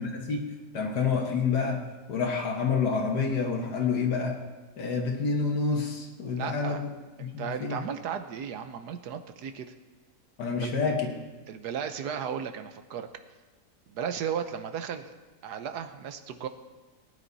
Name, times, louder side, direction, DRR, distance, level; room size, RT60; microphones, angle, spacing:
voice 1, 0.0-1.8 2.1-4.4 4.8-6.9 7.2-7.9 10.4-11.1, left 5 dB, 85° left, 1 dB, 2.0 m, -28 dB
voice 2, 6.4-6.8 7.2-9.7 10.6-10.7 11.5-13.1 13.9-15.1 15.4-16.5, right 8 dB, 80° right, 8 dB, 1.4 m, -35 dB
19.0 x 9.8 x 4.1 m, 1.3 s
omnidirectional pair, 1.7 m